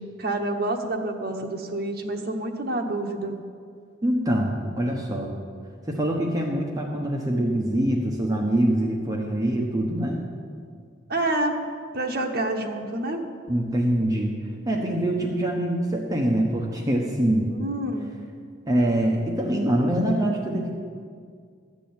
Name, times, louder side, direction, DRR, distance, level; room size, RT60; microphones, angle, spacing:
voice 1, 0.0-3.4 11.1-11.6 11.9-13.2 17.4-18.1, right 2 dB, 55° right, 2 dB, 1.2 m, -28 dB
voice 2, 4.0-5.3 5.9-10.2 13.5-14.3 14.7-17.5 18.7-20.7, right 1 dB, 20° right, 0 dB, 0.9 m, -24 dB
13.0 x 6.2 x 8.6 m, 2.2 s
head